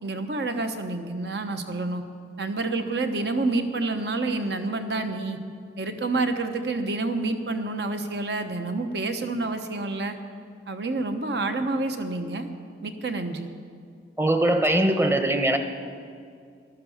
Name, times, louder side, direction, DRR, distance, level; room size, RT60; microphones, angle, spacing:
voice 1, 0.0-2.0 2.4-5.4 5.8-10.2 10.7-12.5 12.8-13.5, right 3 dB, 65° right, 7 dB, 1.0 m, -28 dB
voice 2, 14.2-15.6, right 1 dB, 15° right, 7 dB, 0.8 m, -21 dB
13.0 x 12.0 x 7.1 m, 2.3 s
head